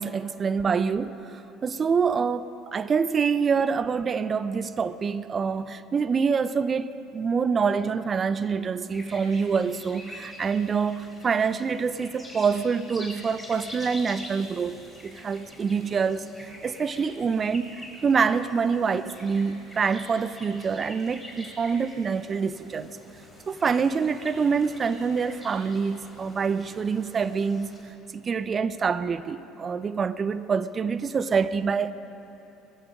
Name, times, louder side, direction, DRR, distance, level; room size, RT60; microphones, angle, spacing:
voice 1, 0.0-14.8 15.0-22.9 23.5-27.8 28.1-31.9, right 5 dB, 35° right, 15 dB, 0.6 m, -26 dB
sound 1, 8.9-27.8, left 1 dB, 10° left, 4.1 m, -46 dB
19.0 x 15.0 x 5.1 m, 3.0 s
hypercardioid pair, 65°, 0 cm